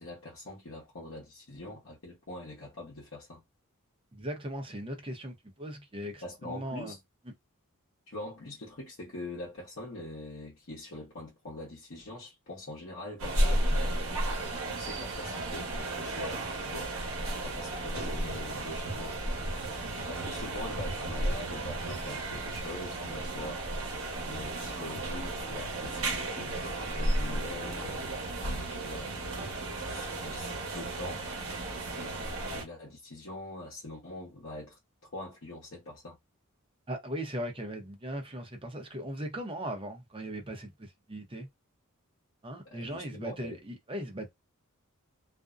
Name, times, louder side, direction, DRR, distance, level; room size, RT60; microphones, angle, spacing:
voice 1, 0.0-3.4 6.2-7.0 8.1-14.1 14.6-16.9 17.2-19.2 20.1-24.0 24.3-28.5 28.8-29.4 29.9-31.2 31.9-36.2 42.6-43.6, left 1 dB, 60° left, 0.9 m, -43 dB
voice 2, 4.1-6.9 36.9-41.5 42.4-44.3, right 1 dB, 25° right, 0.7 m, -38 dB
sound 1, 13.2-32.6, right 1 dB, 65° right, 1.0 m, -33 dB
2.5 x 2.1 x 2.4 m
head